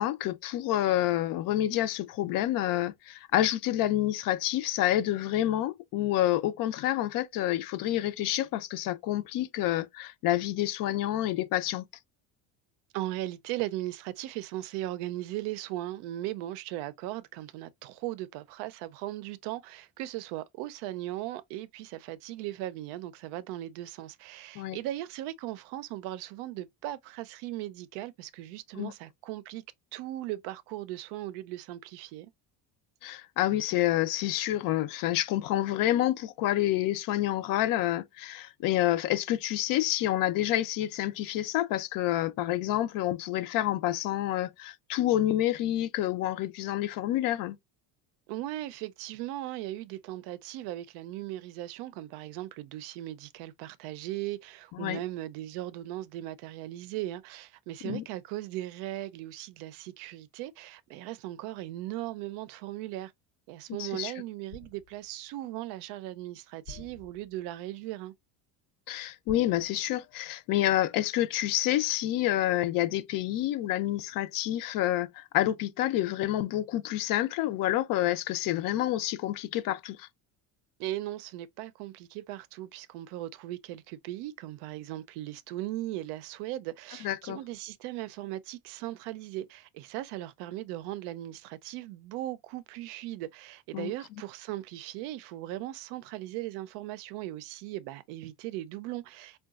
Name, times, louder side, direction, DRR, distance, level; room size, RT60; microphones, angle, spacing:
voice 1, 0.0-11.8 24.6-24.8 28.8-28.9 33.0-47.6 54.7-55.0 57.8-58.0 63.8-64.1 68.9-80.1 87.0-87.4 93.7-93.9, left 14 dB, 60° left, 0.5 m, -28 dB
voice 2, 12.9-29.6 29.9-32.3 48.3-63.1 63.5-68.1 80.8-99.4, right 15 dB, 90° right, 0.5 m, -38 dB
sound 1, 64.5-65.3 66.6-67.6 69.3-70.4 70.6-70.9, left 2 dB, 90° left, 1.1 m, -50 dB
3.8 x 2.2 x 2.3 m
cardioid pair, 145°, 39 cm